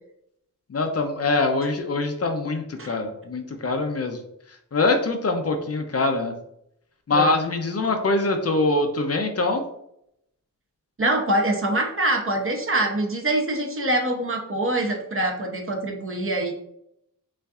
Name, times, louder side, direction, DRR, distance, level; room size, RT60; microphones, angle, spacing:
voice 1, 0.7-4.2 4.7-6.3 7.1-9.6, left 2 dB, 45° left, 5 dB, 0.5 m, -23 dB
voice 2, 11.0-16.5, right 1 dB, 40° right, 2 dB, 0.8 m, -24 dB
5.4 x 2.5 x 2.4 m, 0.76 s
wide cardioid pair, 90°, 34 cm